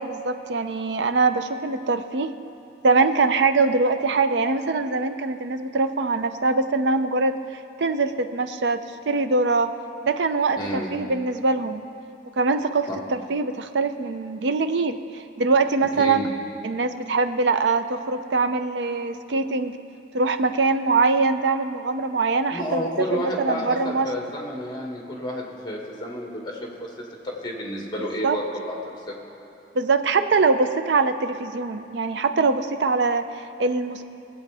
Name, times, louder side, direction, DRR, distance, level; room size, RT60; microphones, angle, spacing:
voice 1, 0.0-2.3 2.8-8.8 9.1-9.7 10.0-11.8 12.4-16.3 16.6-19.8 20.1-24.1 28.2-28.4 29.7-34.0, right 3 dB, 70° right, 9 dB, 0.5 m, -23 dB
voice 2, 10.6-10.9 12.9-13.0 16.0-16.3 22.5-26.9 27.2-28.8 29.1-29.2, left 1 dB, 25° left, -1 dB, 1.6 m, -30 dB
19.5 x 8.0 x 3.4 m, 2.7 s
head